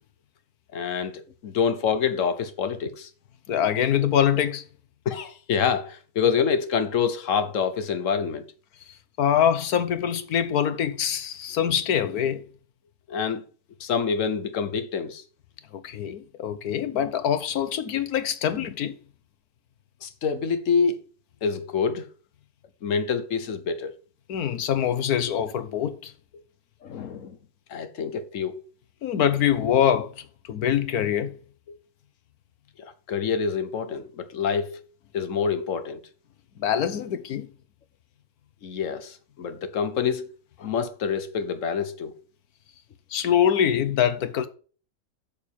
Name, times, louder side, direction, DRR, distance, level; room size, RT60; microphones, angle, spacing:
voice 1, 0.7-3.1 5.0-8.4 13.1-13.4 13.8-15.2 20.0-21.0 21.4-22.1 22.8-23.9 26.8-27.4 27.7-28.6 31.7-31.8 32.8-34.8 35.1-36.0 38.6-40.3 40.6-42.1, left 6 dB, 60° left, 1.3 m, -26 dB
voice 2, 3.5-4.6 9.2-12.4 15.7-18.9 24.3-26.1 29.0-30.1 30.5-31.3 36.6-37.5 43.1-44.5, left 9 dB, 75° left, 1.5 m, -24 dB
7.4 x 6.6 x 7.2 m
omnidirectional pair, 1.6 m